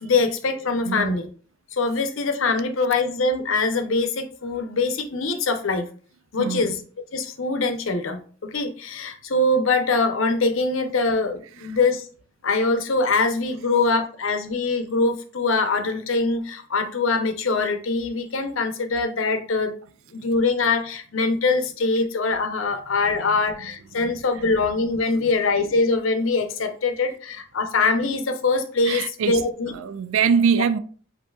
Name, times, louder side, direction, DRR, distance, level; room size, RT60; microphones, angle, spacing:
voice 1, 0.0-1.3 1.7-5.9 6.3-6.8 7.1-12.1 12.4-19.8 20.1-29.7 30.5-30.6, left 3 dB, 75° left, 0.7 m, -23 dB
voice 2, 0.9-1.2 6.4-6.7 23.2-23.4 25.2-25.3 28.9-29.4 29.7-30.8, right 6 dB, 80° right, 0.4 m, -23 dB
7.7 x 2.7 x 2.3 m
head